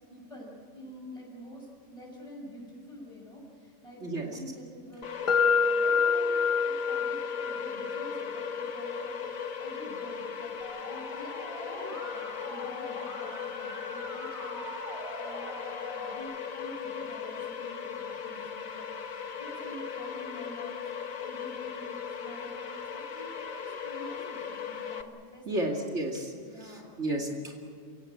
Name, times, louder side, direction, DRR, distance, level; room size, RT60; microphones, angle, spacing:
voice 1, 0.1-25.8 26.4-27.3, equal, 25° left, -1 dB, 7.0 m, -48 dB
voice 2, 4.0-4.4 25.5-27.6, right 1 dB, 60° right, 0 dB, 2.8 m, -33 dB
sound 1, 5.0-25.0, left 7 dB, 85° left, 1.7 m, -38 dB
sound 2, 5.3-13.1, left 5 dB, 40° left, 0.9 m, -30 dB
Musical instrument, 10.6-16.2, equal, 5° right, 6.4 m, -43 dB
29.5 x 16.5 x 8.6 m, 2.2 s
omnidirectional pair, 1.4 m